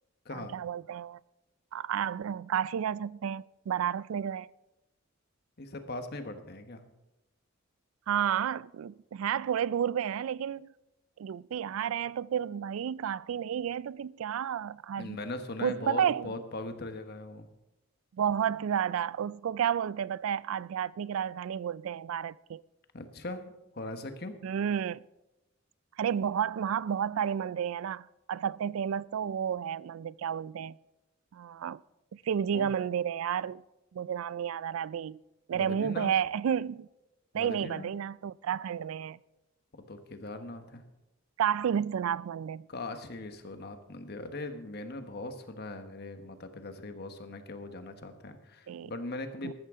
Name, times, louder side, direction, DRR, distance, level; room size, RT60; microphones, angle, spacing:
voice 1, 0.3-1.2 1.7-4.5 8.1-10.7 11.2-15.2 15.6-16.3 18.1-22.6 24.4-25.0 26.0-30.8 31.3-31.8 32.1-33.6 33.9-35.2 35.5-36.9 37.3-39.2 41.4-42.7 48.7-48.9 49.4-49.5, right 8 dB, 80° right, 0.3 m, -31 dB
voice 2, 5.6-6.8 15.0-17.5 22.9-24.4 32.5-32.7 35.5-36.1 37.3-37.9 39.8-40.8 42.7-49.5, left 2 dB, 50° left, 1.2 m, -40 dB
14.0 x 13.5 x 3.7 m
head